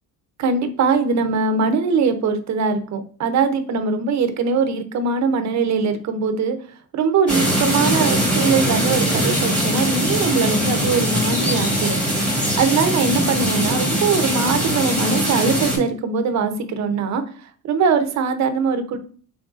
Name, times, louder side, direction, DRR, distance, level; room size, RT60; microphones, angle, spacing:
voice 1, 0.4-6.6 6.9-12.0 12.6-17.2 17.6-19.0, right 5 dB, 45° right, 8 dB, 0.7 m, -21 dB
sound 1, 7.3-15.8, equal, 5° left, 1.3 m, -21 dB
3.8 x 3.3 x 2.4 m, 0.43 s
cardioid pair, 115°, 37 cm